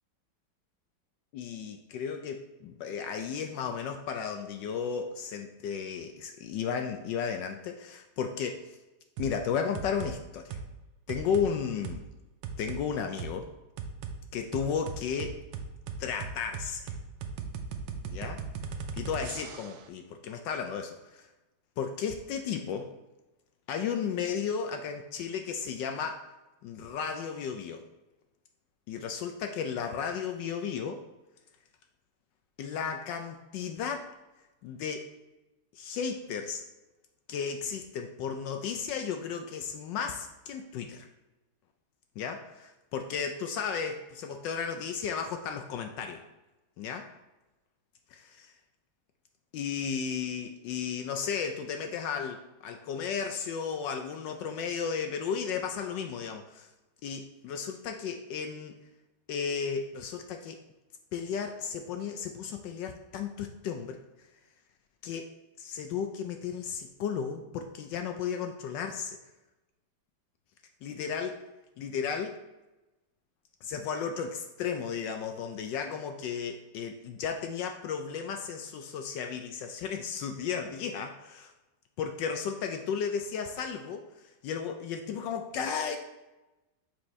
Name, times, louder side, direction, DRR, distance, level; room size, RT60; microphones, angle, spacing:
voice 1, 1.3-8.8 9.2-10.6 11.1-12.0 12.6-13.5 14.3-15.3 16.0-16.9 18.1-18.4 19.0-21.3 21.8-22.9 23.7-26.2 26.6-27.8 28.9-31.0 32.6-34.1 34.6-35.1 35.7-36.6 37.3-41.1 42.2-46.2 46.8-47.1 49.5-56.7 57.0-58.7 59.3-60.6 61.1-64.0 65.0-65.3 65.6-69.2 70.8-71.4 71.8-72.4 73.6-81.5 82.0-86.0, left 6 dB, 75° left, 5 dB, 1.1 m, -34 dB
sound 1, 9.2-9.4 9.7-10.1 10.5-10.7 11.1-11.5 11.8-12.0 12.4-12.8 13.2-13.3 13.8-14.2 14.5-19.8, right 5 dB, 85° right, 1.4 m, -37 dB
7.2 x 4.4 x 3.1 m, 1.0 s
omnidirectional pair, 2.1 m